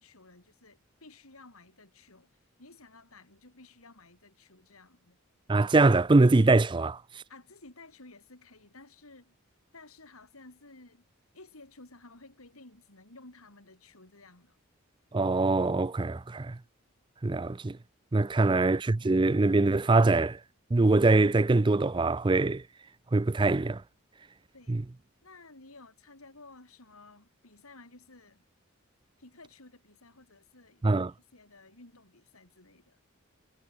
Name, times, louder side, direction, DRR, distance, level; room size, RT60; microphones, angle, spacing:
voice 1, 0.0-5.2 7.3-9.3 9.7-11.1 11.3-14.6 24.5-24.8 25.2-28.4 29.2-33.0, left 2 dB, 85° left, 4.6 m, -54 dB
voice 2, 5.5-7.0 15.1-16.6 17.2-17.8 18.1-18.8 19.0-20.4 20.7-22.6 23.1-23.8 24.7-24.8 30.8-31.1, right 3 dB, 20° right, 0.4 m, -23 dB
head